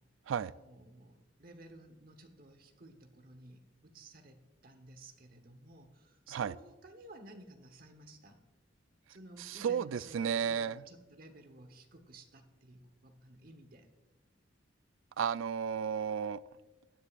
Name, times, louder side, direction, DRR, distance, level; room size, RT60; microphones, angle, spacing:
voice 1, 0.4-8.4 9.1-13.9, right 2 dB, 45° right, 6 dB, 1.1 m, -55 dB
voice 2, 9.4-10.8 15.2-16.4, right 7 dB, 75° right, 18 dB, 0.3 m, -33 dB
17.0 x 10.0 x 2.5 m, 1.2 s
head